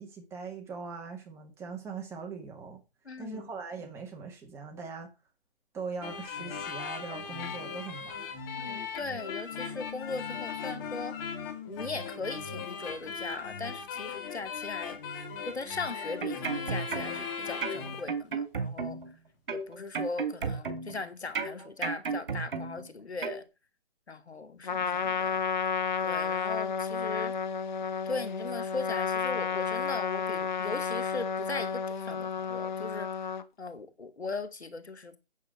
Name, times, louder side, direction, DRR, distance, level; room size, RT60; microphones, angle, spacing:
voice 1, 0.0-2.8 3.2-5.1 5.7-8.2, right 5 dB, 10° right, 2.0 m, -41 dB
voice 2, 3.0-3.5 8.5-11.2 11.7-15.0 15.5-19.0 19.5-23.4 24.1-25.4 26.0-27.3 28.1-33.1 33.6-35.2, left 3 dB, 90° left, 2.5 m, -39 dB
sound 1, 6.0-18.1, left 6 dB, 20° left, 2.0 m, -38 dB
sound 2, 16.0-17.3 17.6-19.1 19.5-21.0 21.3-22.9 23.2-23.4, right 5 dB, 55° right, 3.4 m, -33 dB
Trumpet, 24.6-33.4, left 6 dB, 45° left, 1.2 m, -31 dB
8.4 x 7.6 x 8.8 m
figure-of-eight pair, 155°, 32 cm